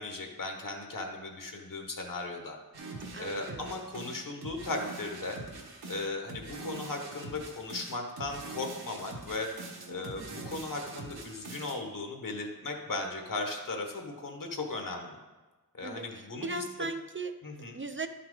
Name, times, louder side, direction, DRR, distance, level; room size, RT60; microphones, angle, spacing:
voice 1, 0.0-2.6 2.9-5.4 5.9-9.5 9.9-15.2 15.7-16.6 17.4-17.8, left 2 dB, 60° left, 3 dB, 1.3 m, -37 dB
sound 1, 2.7-11.8, right 3 dB, 80° right, 1.4 m, -43 dB
voice 2, 3.1-3.8 10.2-10.7 15.8-17.4 17.7-18.1, right 3 dB, 35° right, 8 dB, 0.4 m, -39 dB
11.5 x 5.8 x 3.9 m, 1.2 s
wide cardioid pair, 95°, 37 cm